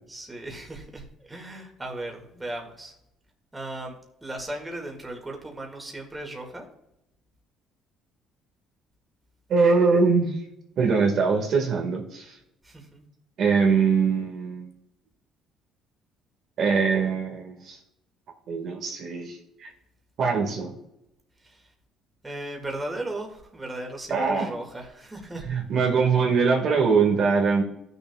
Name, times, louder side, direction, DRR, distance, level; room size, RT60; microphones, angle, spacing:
voice 1, 0.1-2.9 3.5-6.7 12.6-13.0 21.4-21.7 22.2-25.5, right 1 dB, 15° right, 1 dB, 2.0 m, -37 dB
voice 2, 9.5-10.4 10.8-12.3 13.4-14.7 16.6-17.8 18.5-19.7 20.2-20.7 24.1-24.5 25.3-27.6, right 5 dB, 55° right, 1 dB, 1.7 m, -22 dB
15.5 x 6.8 x 2.3 m, 0.82 s
cardioid pair, 120°, 0 cm